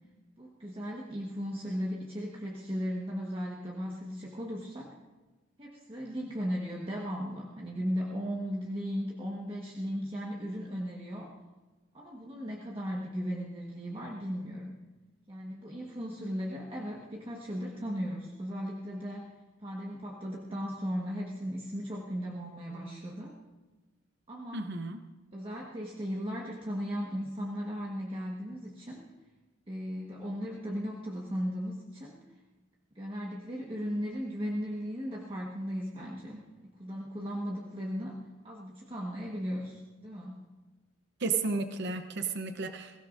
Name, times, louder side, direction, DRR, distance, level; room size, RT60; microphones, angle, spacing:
voice 1, 0.4-4.9 5.6-11.3 11.9-14.8 15.3-19.3 19.6-23.4 24.3-24.7 25.3-29.0 29.7-32.2 32.9-40.4, equal, 25° right, -3 dB, 1.4 m, -36 dB
voice 2, 24.5-25.0 41.2-43.0, right 4 dB, 60° right, 8 dB, 0.8 m, -33 dB
22.0 x 16.0 x 2.6 m, 1.2 s
head